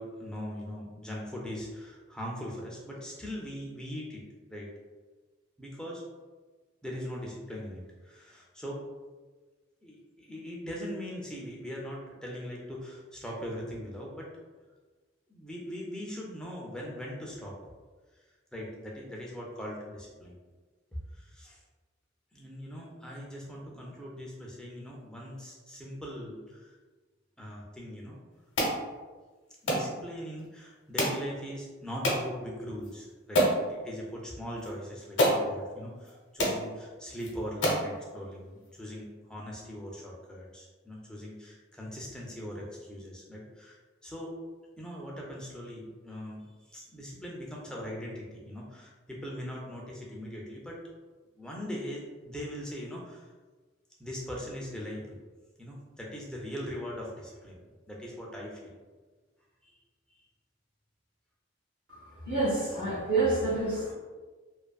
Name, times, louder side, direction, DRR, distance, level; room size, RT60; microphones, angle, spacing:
voice 1, 0.0-4.2 4.5-4.7 5.6-6.0 6.8-8.8 9.8-14.3 15.3-17.5 18.5-20.3 21.1-21.6 22.3-26.7 27.4-28.2 29.6-44.4 44.8-50.8 51.4-53.3 54.0-55.2 55.6-58.8 59.6-59.8, equal, 5° left, -3 dB, 0.3 m, -40 dB
sound 1, 28.6-28.8 29.7-29.9 31.0-31.2 32.0-32.2 32.8-32.9 33.3-33.6 34.6-34.7 35.2-35.4 36.1-36.2 36.4-36.6 37.2-37.3 37.6-37.9, equal, 70° left, 0.7 m, -26 dB
voice 2, 62.2-63.9, right 2 dB, 50° right, -9 dB, 0.6 m, -28 dB
2.6 x 2.5 x 2.2 m, 1.3 s
head